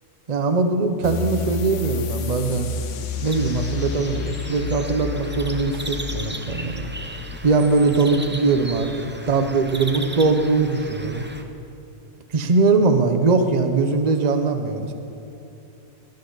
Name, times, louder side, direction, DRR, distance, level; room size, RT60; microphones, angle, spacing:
voice 1, 0.3-2.7 3.2-6.9 7.4-11.2 12.3-14.9, right 3 dB, 35° right, 6 dB, 0.9 m, -21 dB
sound 1, 1.0-8.2, left 5 dB, 75° left, 1.1 m, -30 dB
sound 2, 3.2-11.4, right 2 dB, 10° right, 0.5 m, -36 dB
18.0 x 10.5 x 4.0 m, 2.9 s
omnidirectional pair, 1.3 m